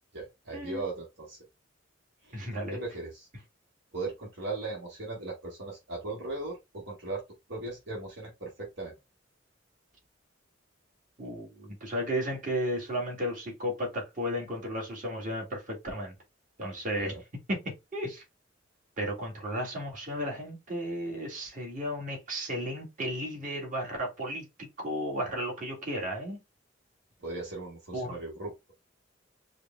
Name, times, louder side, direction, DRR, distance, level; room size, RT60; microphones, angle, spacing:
voice 1, 0.1-1.4 2.2-2.4 2.7-3.3 3.9-7.2 7.5-9.0 17.0-17.2 27.2-28.5, right 2 dB, 65° right, 1.5 m, -38 dB
voice 2, 2.3-2.8 11.2-16.1 16.6-17.2 17.5-17.6 17.9-18.2 19.0-26.4 27.9-28.2, equal, 45° right, 1.9 m, -34 dB
4.9 x 2.3 x 3.1 m
head